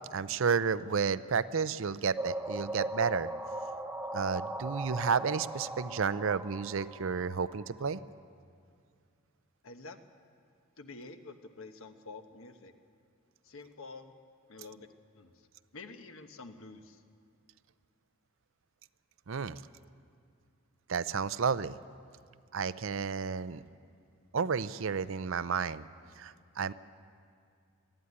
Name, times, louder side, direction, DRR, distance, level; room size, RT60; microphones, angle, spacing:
voice 1, 0.1-3.3 4.1-8.0 19.3-19.6 20.9-21.8 22.5-23.6 24.3-25.9 26.2-26.7, right 6 dB, 60° right, 15 dB, 0.5 m, -31 dB
sound 1, 2.2-7.9, right 1 dB, 10° right, 1.0 m, -39 dB
voice 2, 9.6-10.0 10.8-12.7 13.4-14.1 14.5-14.9 15.1-15.5 15.7-17.0, left 3 dB, 65° left, 7 dB, 1.1 m, -48 dB
20.0 x 14.0 x 9.6 m, 2.3 s
head